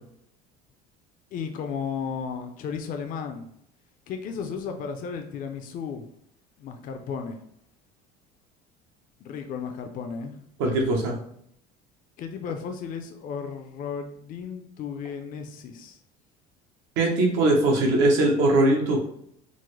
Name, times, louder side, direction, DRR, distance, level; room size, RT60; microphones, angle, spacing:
voice 1, 1.3-3.5 4.1-6.1 6.6-7.4 9.2-10.4 12.2-16.0, left 6 dB, 45° left, 5 dB, 0.5 m, -34 dB
voice 2, 10.6-11.2 17.0-19.0, right 2 dB, 75° right, 1 dB, 0.9 m, -21 dB
3.7 x 2.0 x 3.1 m, 0.71 s
supercardioid pair, 95°, 19 cm